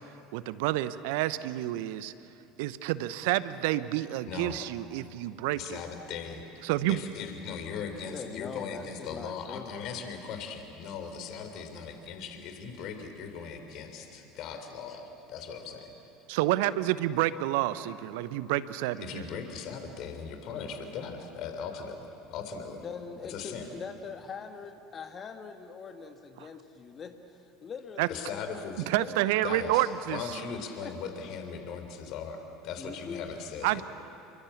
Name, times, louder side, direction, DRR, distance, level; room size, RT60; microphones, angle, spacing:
voice 1, 0.3-2.1 2.6-5.8 6.6-7.0 16.3-19.3 28.0-28.1 28.9-30.2 33.6-33.8, right 15 dB, 60° right, 16 dB, 0.9 m, -29 dB
voice 2, 4.3-4.6 5.5-15.9 19.0-22.8 23.3-23.7 28.1-28.9 29.4-33.8, left 6 dB, 50° left, 6 dB, 3.7 m, -39 dB
voice 3, 8.1-9.7 14.9-15.0 22.8-28.6 28.9-29.3 30.8-30.9 32.8-33.2, left 5 dB, 35° left, 6 dB, 1.6 m, -42 dB
29.0 x 23.5 x 8.5 m, 2.9 s
figure-of-eight pair, 70°, 0 cm